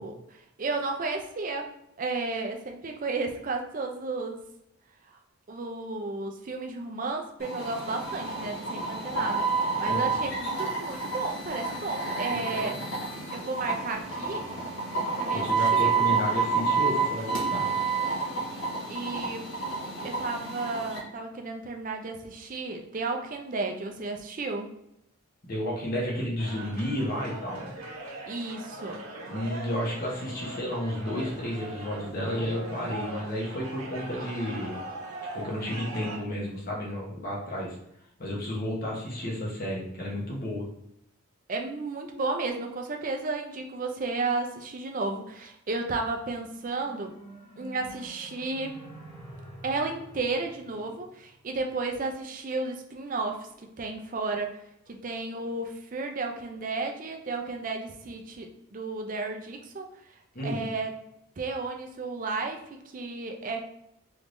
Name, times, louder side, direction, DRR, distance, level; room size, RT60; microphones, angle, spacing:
voice 1, 0.0-1.7 2.0-4.4 5.1-5.2 5.5-9.5 9.8-12.7 13.3-14.5 15.2-16.0 18.9-19.5 20.0-24.7 28.3-29.0 41.5-47.1 47.6-48.8 49.6-54.6 54.9-59.9 60.4-60.9 61.4-63.6, right 3 dB, 40° right, 3 dB, 0.4 m, -33 dB
sound 1, 7.4-21.0, right 4 dB, 70° left, 1.2 m, -29 dB
voice 2, 12.3-12.8 15.3-17.7 25.5-27.7 29.3-34.8 35.3-37.8 38.2-40.6 60.3-60.6, equal, 40° left, -3 dB, 0.9 m, -32 dB
sound 2, 26.4-36.2, right 1 dB, 75° right, 0.8 m, -40 dB
sound 3, 46.3-51.6, right 1 dB, 20° left, 1.2 m, -48 dB
3.5 x 3.1 x 2.6 m, 0.79 s
head